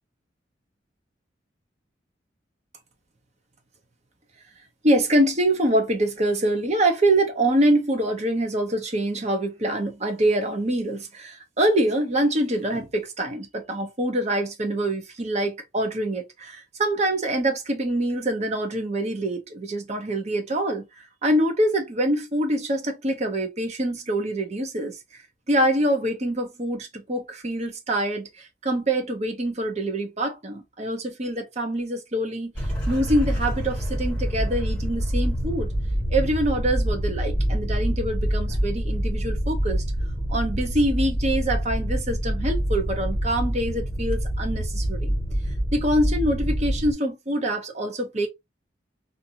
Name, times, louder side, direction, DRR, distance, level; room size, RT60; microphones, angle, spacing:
voice 1, 4.8-24.9 25.5-32.5 32.9-35.7 36.1-39.8 40.3-45.1 45.7-48.3, right 1 dB, 35° right, 0.8 m, -25 dB
sound 1, 32.6-46.9, equal, 5° left, 1.7 m, -26 dB
2.6 x 2.6 x 2.8 m
head